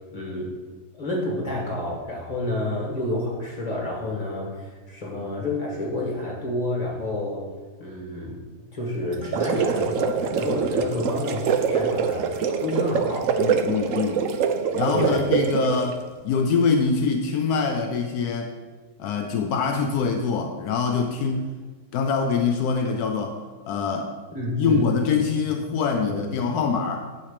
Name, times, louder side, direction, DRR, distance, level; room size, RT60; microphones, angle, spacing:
voice 1, 0.1-0.5 1.0-7.4 7.8-8.4 8.7-12.3 12.6-13.3 14.9-15.2 24.3-25.1 26.1-26.2, left 1 dB, 25° left, -2 dB, 1.7 m, -29 dB
sound 1, 9.1-15.9, right 6 dB, 65° right, 0.9 m, -24 dB
voice 2, 13.4-14.2 14.7-18.5 19.0-21.5 21.9-23.4 23.7-24.1 24.6-27.1, left 5 dB, 80° left, 4 dB, 1.1 m, -24 dB
8.9 x 3.2 x 6.6 m, 1.4 s
omnidirectional pair, 1.7 m